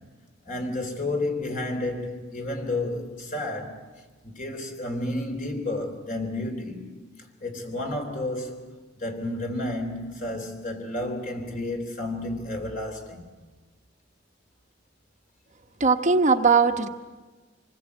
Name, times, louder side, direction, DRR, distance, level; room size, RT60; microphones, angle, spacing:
voice 1, 0.5-3.9 4.2-6.9 7.4-8.6 9.0-13.2, left 2 dB, 45° left, 3.9 m, -31 dB
voice 2, 15.8-16.9, right 4 dB, 40° right, 1.1 m, -19 dB
27.0 x 20.5 x 8.4 m
head